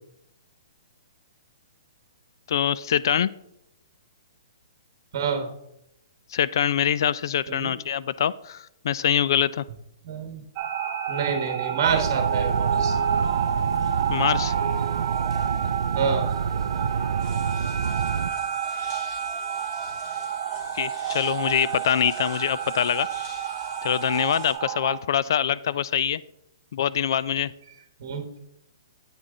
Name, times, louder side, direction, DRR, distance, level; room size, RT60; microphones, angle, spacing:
voice 1, 2.5-3.3 6.3-9.6 14.1-14.5 20.7-23.1 23.8-26.2 26.7-27.5, left 9 dB, 60° left, 19 dB, 0.3 m, -24 dB
voice 2, 5.1-5.5 7.5-7.7 10.0-10.4 11.1-13.0 15.9-16.3 28.0-28.2, right 6 dB, 45° right, 6 dB, 1.2 m, -27 dB
sound 1, 10.6-25.0, right 8 dB, 25° right, 0.7 m, -29 dB
sound 2, 11.8-18.3, right 6 dB, 85° right, 0.4 m, -28 dB
sound 3, 17.2-24.5, left 2 dB, 40° left, 2.3 m, -46 dB
8.6 x 6.1 x 3.8 m, 0.80 s
hypercardioid pair, 165°, 3 cm